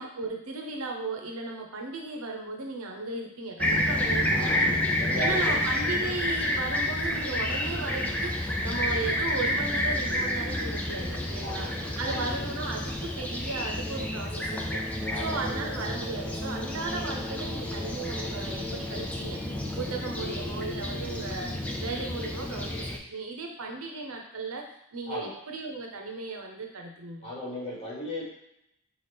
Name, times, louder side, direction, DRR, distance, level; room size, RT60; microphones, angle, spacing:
voice 1, 0.0-4.8 5.2-14.8 15.2-19.4 19.7-27.3, right 3 dB, 75° right, 2 dB, 0.8 m, -36 dB
Fixed-wing aircraft airplane, 3.6-23.0, left 1 dB, 5° left, 0.3 m, -30 dB
voice 2, 4.3-4.7 5.0-5.7 11.4-11.7 12.0-12.3 15.1-15.4 25.1-25.3 27.2-28.2, left 1 dB, 30° left, -5 dB, 1.3 m, -36 dB
5.7 x 2.5 x 3.4 m, 0.80 s
head